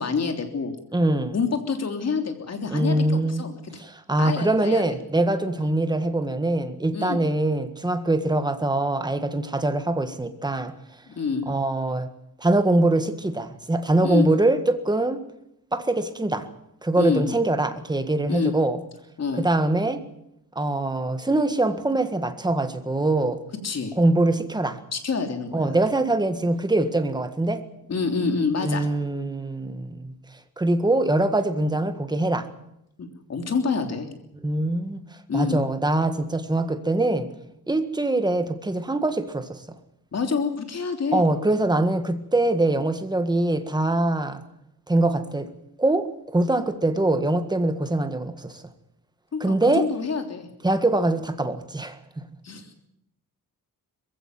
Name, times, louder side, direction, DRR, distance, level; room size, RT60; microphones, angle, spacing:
voice 1, 0.0-0.7 1.3-3.8 4.2-4.8 5.6-5.7 6.9-7.2 11.1-11.5 14.0-14.3 17.0-17.3 18.3-18.5 19.2-19.4 23.6-23.9 24.9-25.8 27.9-28.9 33.0-34.1 35.3-35.6 40.1-41.3 49.3-50.5 52.4-52.7, left 5 dB, 45° left, 5 dB, 3.3 m, -27 dB
voice 2, 0.9-1.4 2.7-3.5 3.8-10.8 11.5-12.1 12.4-15.2 15.7-16.5 16.8-18.8 19.4-20.0 20.6-23.4 24.0-24.8 25.5-27.6 28.6-30.1 30.6-32.5 34.4-35.0 35.3-37.3 37.7-39.6 41.1-44.4 44.9-45.5 45.8-48.6 49.4-49.9 50.6-52.3, right 2 dB, 10° right, 9 dB, 1.7 m, -23 dB
21.5 x 16.0 x 9.4 m, 0.80 s
wide cardioid pair, 135°, 35 cm